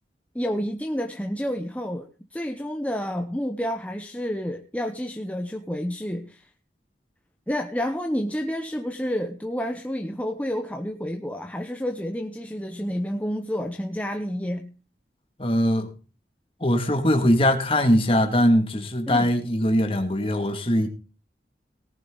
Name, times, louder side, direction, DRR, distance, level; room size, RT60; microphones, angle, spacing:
voice 1, 0.3-6.5 7.5-14.7 19.1-19.3, equal, 10° left, 0.8 m, -29 dB
voice 2, 15.4-15.9 16.6-20.9, equal, 30° left, 2.2 m, -21 dB
18.0 x 11.0 x 3.9 m
head